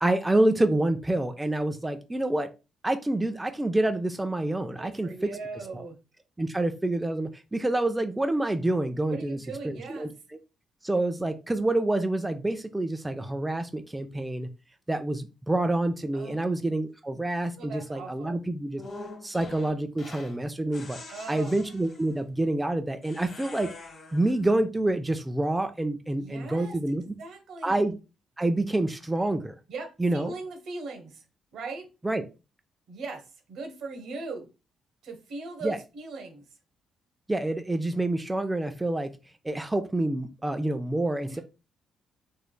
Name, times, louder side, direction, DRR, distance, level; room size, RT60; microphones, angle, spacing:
voice 1, 0.0-2.5 2.8-5.3 5.7-5.8 6.4-9.4 9.6-10.1 10.8-14.5 14.9-18.8 19.2-21.0 21.3-23.7 24.1-27.0 27.6-27.9 28.4-29.5 30.0-30.3 32.0-32.2 35.6-35.8 37.3-39.1 39.4-41.4, right 1 dB, 10° right, 7 dB, 0.3 m, -27 dB
voice 2, 4.8-6.0 9.1-10.1 16.1-16.6 17.6-18.4 21.1-21.5 26.2-27.9 29.7-31.2 31.5-31.9 32.9-34.5 35.0-36.4 41.3-41.4, right 3 dB, 75° right, 4 dB, 1.0 m, -39 dB
sound 1, 18.8-20.4 20.7-22.2 23.0-24.4, left 2 dB, 55° left, 1.1 m, -45 dB
3.1 x 3.0 x 2.2 m, 0.30 s
cardioid pair, 90°, 0 cm